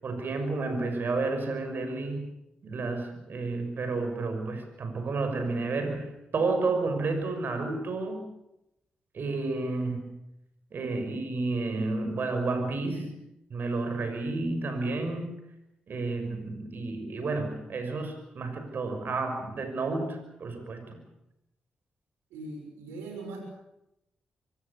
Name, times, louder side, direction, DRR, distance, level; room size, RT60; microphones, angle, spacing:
voice 1, 0.0-2.3 2.6-8.3 9.1-10.1 10.7-13.2 13.5-15.3 15.9-21.0, right 3 dB, 60° right, 7 dB, 6.2 m, -31 dB
voice 2, 22.3-23.4, right 2 dB, 85° right, 3 dB, 6.6 m, -40 dB
25.5 x 17.0 x 8.5 m, 0.87 s
hypercardioid pair, 40°, 4 cm